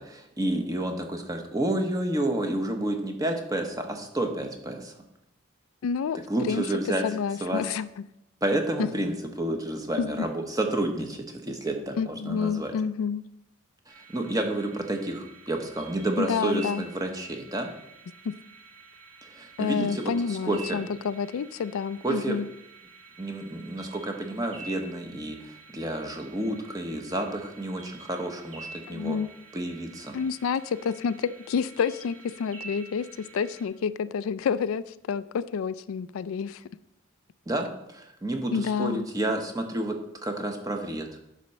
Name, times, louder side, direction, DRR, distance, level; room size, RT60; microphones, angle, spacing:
voice 1, 0.0-5.0 6.3-7.0 7.4-7.6 8.4-12.7 13.9-17.7 19.2-20.8 22.0-22.4 23.2-29.2 29.5-30.2 37.5-41.1, right 1 dB, 15° right, 4 dB, 0.9 m, -30 dB
voice 2, 5.8-6.2 6.5-6.6 7.0-7.9 10.0-10.1 12.0-13.2 16.2-16.8 18.2-18.3 19.6-22.5 28.9-29.3 30.1-36.6 38.5-39.0, left 6 dB, 80° left, 15 dB, 0.3 m, -29 dB
sound 1, 13.9-33.6, right 3 dB, 80° right, 2.9 m, -48 dB
10.0 x 4.2 x 6.5 m, 0.83 s
head